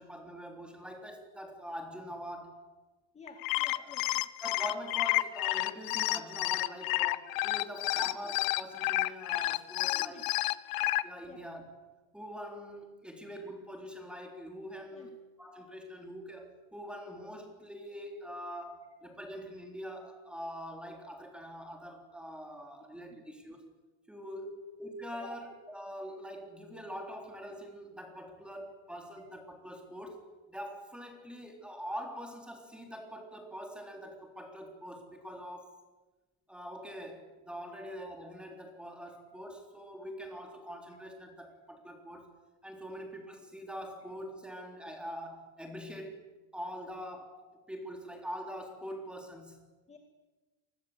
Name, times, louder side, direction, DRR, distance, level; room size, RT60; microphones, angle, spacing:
voice 1, 0.0-2.6 3.8-3.9 4.4-10.3 11.0-11.6 12.1-15.1 15.4-23.7 24.1-24.5 24.8-35.8 36.5-42.3 42.6-46.2 46.5-49.6, equal, 5° right, 3 dB, 3.7 m, -44 dB
voice 2, 3.1-4.3 7.9-8.1 9.9-10.2 11.3-11.4 14.9-15.1 23.1-23.2 24.4-24.6 25.1-25.3 37.7-37.8 49.9-50.0, left 3 dB, 15° left, 3 dB, 2.2 m, -51 dB
sound 1, 3.3-11.0, left 19 dB, 65° left, 1.1 m, -30 dB
27.5 x 21.0 x 8.1 m, 1.2 s
cardioid pair, 165°, 38 cm